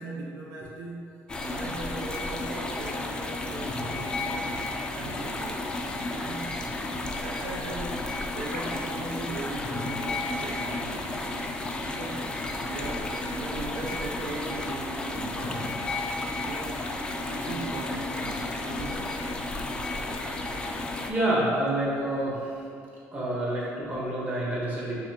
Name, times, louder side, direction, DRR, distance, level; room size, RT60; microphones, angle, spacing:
voice 1, 0.0-5.6 6.2-6.6 7.2-11.4 11.8-12.3 12.6-15.8 16.4-18.4 18.6-19.2, right 2 dB, 80° right, -3 dB, 0.5 m, -39 dB
sound 1, 1.3-21.1, left 2 dB, 15° left, 0.3 m, -32 dB
voice 2, 19.9-20.2 21.1-22.7 23.1-25.0, right 1 dB, 30° right, -6 dB, 1.3 m, -28 dB
5.6 x 3.2 x 2.8 m, 2.5 s
cardioid pair, 130°, 5 cm